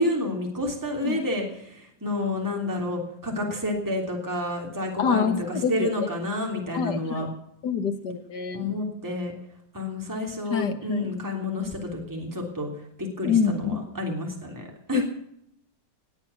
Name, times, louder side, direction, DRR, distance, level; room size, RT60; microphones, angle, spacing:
voice 1, 0.0-7.3 8.5-9.3 9.7-12.7 13.0-15.0, left 1 dB, 10° right, 1 dB, 3.2 m, -29 dB
voice 2, 5.0-5.9 6.7-7.3 7.6-8.7 10.5-11.1 13.2-13.8 14.9-15.0, left 6 dB, 65° left, 8 dB, 2.0 m, -26 dB
19.5 x 8.9 x 7.0 m, 0.74 s
omnidirectional pair, 2.0 m